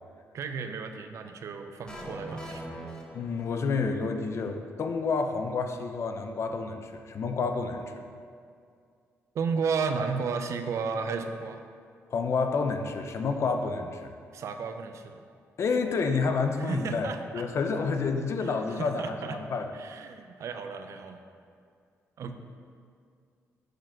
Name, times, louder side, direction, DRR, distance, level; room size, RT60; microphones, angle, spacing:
voice 1, 0.3-2.6 9.3-11.6 14.3-15.2 16.6-17.4 18.8-19.4 19.7-21.2 22.2-22.3, right 5 dB, 65° right, 7 dB, 0.6 m, -33 dB
sound 1, 1.9-3.9, right 1 dB, 15° left, 1.1 m, -41 dB
voice 2, 3.1-7.9 12.1-14.1 15.6-19.7, left 4 dB, 55° left, 6 dB, 0.7 m, -29 dB
6.5 x 4.1 x 6.3 m, 2.3 s
cardioid pair, 80°, 5 cm